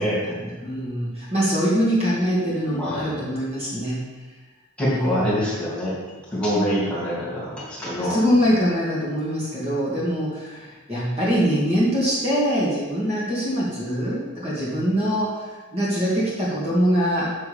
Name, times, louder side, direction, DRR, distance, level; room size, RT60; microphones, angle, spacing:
voice 1, 0.0-4.0 4.9-5.4 8.0-17.4, equal, 30° right, -7 dB, 2.4 m, -23 dB
voice 2, 2.7-3.2 4.8-5.9 6.3-8.2, equal, 5° left, -9 dB, 2.6 m, -25 dB
7.1 x 6.9 x 5.2 m, 1.2 s
head